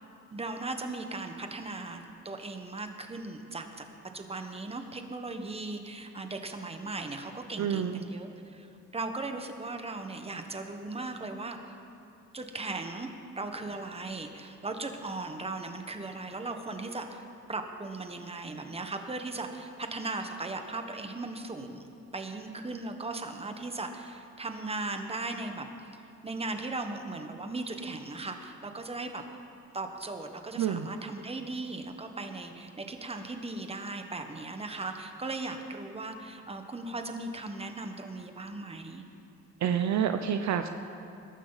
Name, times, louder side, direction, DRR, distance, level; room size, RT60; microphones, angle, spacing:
voice 1, 0.3-3.9 4.1-8.7 8.9-11.6 12.3-13.1 13.3-21.8 22.1-25.7 25.9-29.2 29.7-39.0, right 3 dB, 20° right, 5 dB, 1.4 m, -38 dB
voice 2, 7.6-8.0 30.6-30.9 39.6-40.7, right 8 dB, 65° right, 8 dB, 0.7 m, -28 dB
21.5 x 12.5 x 4.1 m, 2.6 s
cardioid pair, 90°, 30 cm